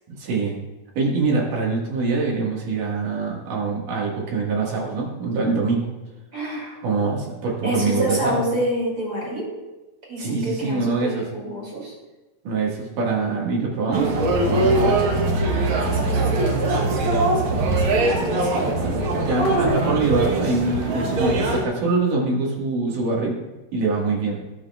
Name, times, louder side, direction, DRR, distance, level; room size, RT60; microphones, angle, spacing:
voice 1, 0.1-0.5 1.0-5.9 6.8-8.4 10.2-11.2 12.4-14.1 14.4-15.0 19.3-23.4 23.7-24.4, right 3 dB, 65° right, -2 dB, 3.3 m, -24 dB
voice 2, 6.3-6.8 7.6-9.5 10.1-11.9 15.7-19.8, right 1 dB, 25° right, -4 dB, 3.0 m, -28 dB
sound 1, 13.9-21.7, right 2 dB, 85° right, 1.1 m, -22 dB
18.0 x 6.3 x 2.4 m, 1.1 s
omnidirectional pair, 4.2 m